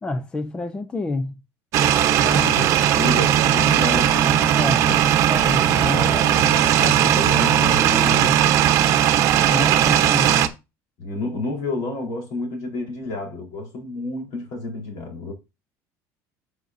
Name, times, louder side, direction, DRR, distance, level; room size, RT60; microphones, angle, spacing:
voice 1, 0.0-1.3 2.2-2.6 4.5-6.0 6.8-8.4 9.5-10.4, left 2 dB, 15° left, 0.6 m, -29 dB
sound 1, 1.7-10.5, right 10 dB, 45° right, 1.0 m, -18 dB
voice 2, 2.1-5.0 5.8-8.3 11.0-15.3, left 2 dB, 55° left, 4.1 m, -30 dB
10.0 x 6.6 x 2.7 m
cardioid pair, 175°, 7 cm